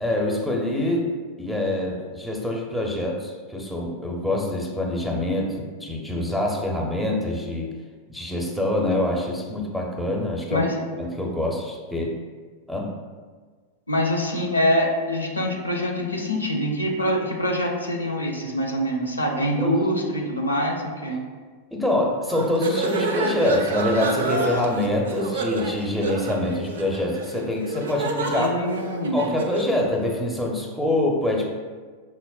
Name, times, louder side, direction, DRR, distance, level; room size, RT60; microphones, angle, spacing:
voice 1, 0.0-1.1 1.4-7.7 8.1-10.7 11.0-12.1 12.7-12.9 19.6-19.8 21.7-28.5 29.1-31.5, left 1 dB, ahead, -1 dB, 0.5 m, -25 dB
voice 2, 10.5-10.8 13.9-21.2 28.3-29.4, equal, 80° left, 0 dB, 0.5 m, -24 dB
sound 1, 22.3-29.8, right 2 dB, 65° right, 0.3 m, -29 dB
5.6 x 2.1 x 2.3 m, 1.5 s
figure-of-eight pair, 90°, 0 cm